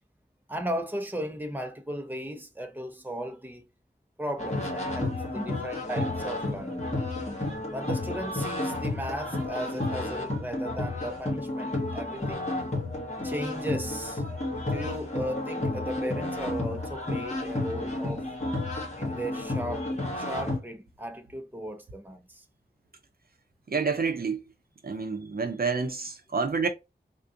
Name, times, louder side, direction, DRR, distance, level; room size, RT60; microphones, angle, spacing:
voice 1, 0.5-3.6 4.2-6.8 7.7-12.6 13.2-14.2 14.7-18.3 19.0-22.4, equal, 10° right, 0.7 m, -36 dB
sound 1, 4.4-20.6, left 2 dB, 40° left, 1.6 m, -31 dB
voice 2, 23.7-24.4 24.8-26.7, right 4 dB, 60° right, 0.6 m, -28 dB
3.6 x 2.4 x 2.6 m
wide cardioid pair, 55°, 17 cm